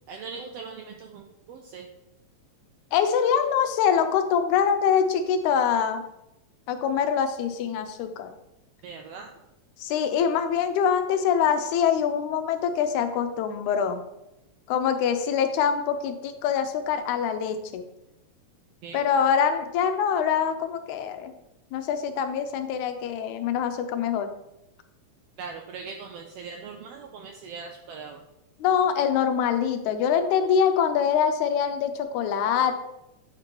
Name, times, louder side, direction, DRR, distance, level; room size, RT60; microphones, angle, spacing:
voice 1, 0.1-1.9 8.8-9.3 18.8-19.0 25.4-28.2, right 5 dB, 85° right, 3 dB, 1.4 m, -40 dB
voice 2, 2.9-6.0 6.7-8.3 9.8-14.0 14.7-17.9 18.9-21.3 21.7-24.3 28.6-32.7, left 7 dB, 90° left, 8 dB, 2.1 m, -24 dB
8.8 x 5.1 x 3.0 m, 0.90 s
omnidirectional pair, 3.3 m